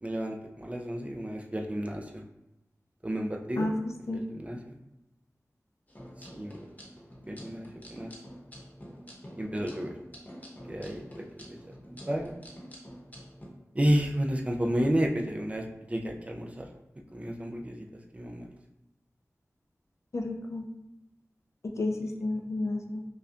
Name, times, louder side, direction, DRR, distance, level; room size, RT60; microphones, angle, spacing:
voice 1, 0.0-2.2 3.0-3.7 4.1-4.6 6.2-6.5 7.3-8.1 9.4-9.9 10.7-11.1 11.5-11.6 12.1-12.3 13.7-16.7 17.1-17.8 18.1-18.5, equal, 25° right, 1 dB, 0.4 m, -31 dB
voice 2, 3.6-4.2 20.1-20.7 21.6-23.1, left 2 dB, 60° left, 2 dB, 0.4 m, -32 dB
sound 1, 5.9-13.5, equal, 30° left, 0.8 m, -47 dB
5.1 x 2.2 x 2.5 m, 0.93 s
wide cardioid pair, 70°, 6 cm